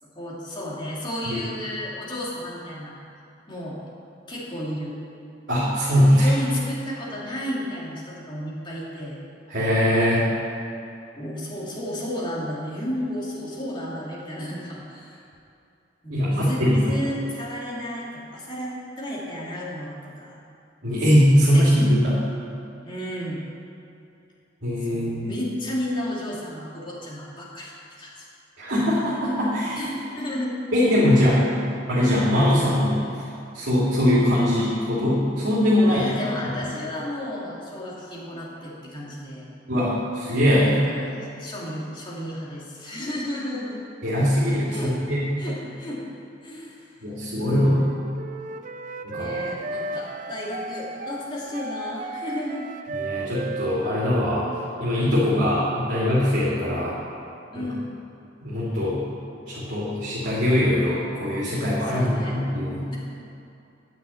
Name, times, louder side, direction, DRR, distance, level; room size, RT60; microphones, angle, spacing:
voice 1, 0.0-2.9 3.5-3.8 4.3-4.9 6.2-9.2 11.1-15.2 16.0-20.4 21.5-21.7 22.8-23.4 24.8-27.7 28.0-28.3 29.7-30.5 35.8-39.5 40.5-43.8 44.7-44.9 45.4-46.0 46.4-46.9 47.4-47.9 49.1-52.7 57.5-57.9 61.9-62.4, left 1 dB, 25° left, -6 dB, 2.5 m, -33 dB
voice 2, 5.5-6.3 9.5-10.2 16.1-16.8 20.8-22.2 24.6-25.3 28.6-29.8 30.7-31.4 31.9-33.0 33.5-36.0 39.7-40.7 44.0-45.2 47.0-47.8 49.0-49.3 53.0-54.4 54.8-57.0 57.5-57.7 58.4-59.0 59.5-62.9, equal, 70° right, -9 dB, 2.8 m, -21 dB
Wind instrument woodwind instrument, 47.7-55.1, right 3 dB, 40° right, 0.5 m, -34 dB
9.7 x 6.3 x 8.4 m, 2.6 s
head